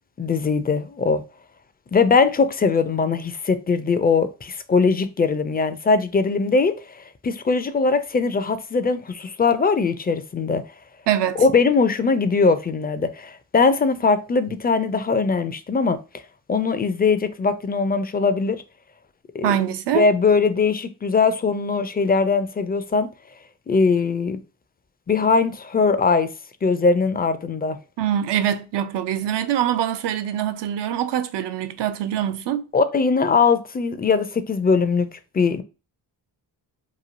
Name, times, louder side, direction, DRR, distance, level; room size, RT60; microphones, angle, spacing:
voice 1, 0.2-1.2 1.9-10.6 11.4-16.0 16.5-18.6 19.3-19.6 19.9-23.1 23.7-24.4 25.1-26.3 26.6-27.8 32.7-35.1 35.3-35.6, left 4 dB, 25° left, 0.4 m, -20 dB
voice 2, 11.1-11.4 19.4-20.1 28.0-32.7, right 10 dB, 75° right, 0.5 m, -24 dB
3.0 x 2.3 x 2.5 m
cardioid pair, 55°, 42 cm